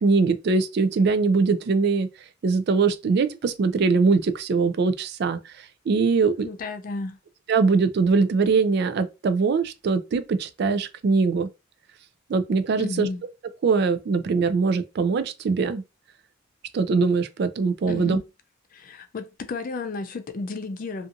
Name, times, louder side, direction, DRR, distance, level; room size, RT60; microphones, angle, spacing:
voice 1, 0.0-2.1 2.4-6.5 7.5-11.5 12.3-13.1 13.6-15.8 16.7-18.2, right 4 dB, 55° right, 0.3 m, -22 dB
voice 2, 6.4-7.2 12.8-13.2 17.9-18.2 18.7-21.1, left 3 dB, 45° left, 0.3 m, -33 dB
2.5 x 2.5 x 2.6 m
head